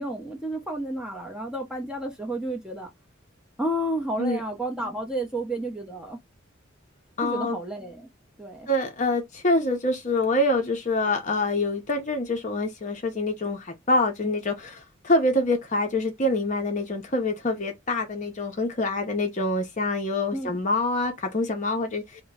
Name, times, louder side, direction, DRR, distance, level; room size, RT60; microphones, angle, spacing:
voice 1, 0.0-2.9 3.6-6.2 7.2-8.1 8.4-8.7 20.3-20.6, right 1 dB, 5° right, 0.7 m, -31 dB
voice 2, 7.2-7.6 8.7-22.2, left 2 dB, 35° left, 0.7 m, -26 dB
2.9 x 2.1 x 3.6 m
head